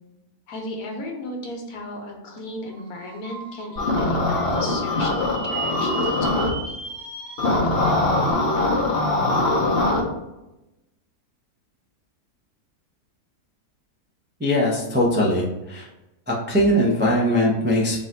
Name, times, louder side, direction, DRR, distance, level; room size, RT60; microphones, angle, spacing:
voice 1, 0.5-6.6, left 1 dB, 70° left, 1 dB, 1.3 m, -35 dB
sound 1, 2.7-8.3, right 4 dB, 90° right, 2.1 m, -36 dB
sound 2, 3.8-6.5 7.4-10.0, left 2 dB, 50° left, 0.7 m, -22 dB
voice 2, 14.4-15.9 16.3-18.0, equal, 15° right, -4 dB, 0.3 m, -21 dB
3.9 x 2.6 x 4.4 m, 0.95 s
omnidirectional pair, 1.7 m